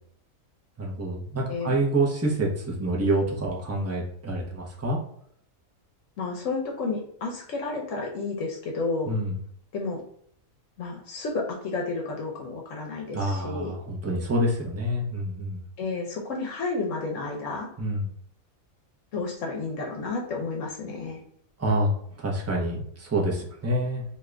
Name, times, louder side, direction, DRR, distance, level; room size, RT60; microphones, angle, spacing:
voice 1, 0.8-5.0 9.1-9.4 13.1-15.6 17.8-18.1 21.6-24.0, right 1 dB, 25° right, -2 dB, 0.3 m, -27 dB
voice 2, 6.2-9.1 9.7-10.0 10.8-13.7 15.8-17.7 19.1-21.2, left 3 dB, 70° left, 0 dB, 1.0 m, -31 dB
2.8 x 2.4 x 3.2 m, 0.65 s
omnidirectional pair, 1.5 m